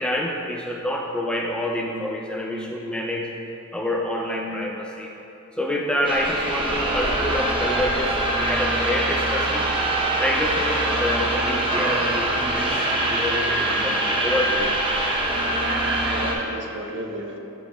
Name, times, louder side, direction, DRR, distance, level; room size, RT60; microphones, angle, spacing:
voice 1, 0.0-3.3 3.7-5.1 5.6-9.7 10.2-14.7, left 1 dB, 5° left, 0 dB, 0.4 m, -27 dB
sound 1, 6.0-16.3, right 1 dB, 25° right, 0.8 m, -23 dB
voice 2, 15.5-17.4, right 1 dB, 55° right, 1 dB, 0.7 m, -32 dB
8.2 x 7.7 x 2.3 m, 2.8 s
head